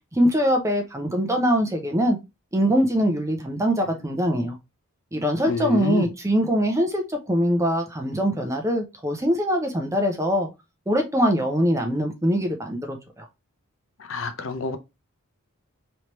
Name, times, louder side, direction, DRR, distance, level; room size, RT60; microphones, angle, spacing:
voice 1, 0.1-2.2 2.5-4.6 5.1-10.5 10.9-13.3, equal, 15° right, 0.6 m, -23 dB
voice 2, 5.5-6.1 14.1-14.8, left 4 dB, 65° left, 0.5 m, -27 dB
3.3 x 2.9 x 2.9 m
head